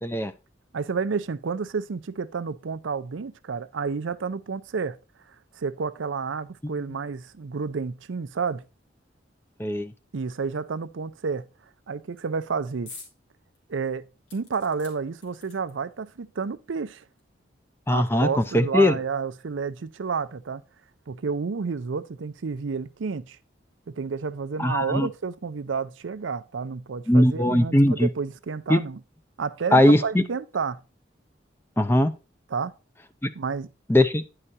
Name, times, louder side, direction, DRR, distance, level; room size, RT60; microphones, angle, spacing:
voice 1, 0.0-0.3 9.6-9.9 17.9-18.9 24.6-25.1 27.1-28.1 28.7-28.8 29.7-30.2 31.8-32.1 33.9-34.2, left 1 dB, 10° left, 0.5 m, -20 dB
voice 2, 0.7-5.0 5.5-8.6 10.1-11.5 11.9-12.9 13.7-14.0 14.3-17.0 17.9-20.6 21.1-23.4 23.9-29.0 29.4-30.8 32.5-32.7 33.3-33.7, right 5 dB, 85° right, 0.5 m, -30 dB
sound 1, 12.9-13.1 13.5-13.6 14.3-15.9 16.8-16.9 17.2-17.3, left 4 dB, 75° left, 2.5 m, -46 dB
10.0 x 4.9 x 4.1 m
head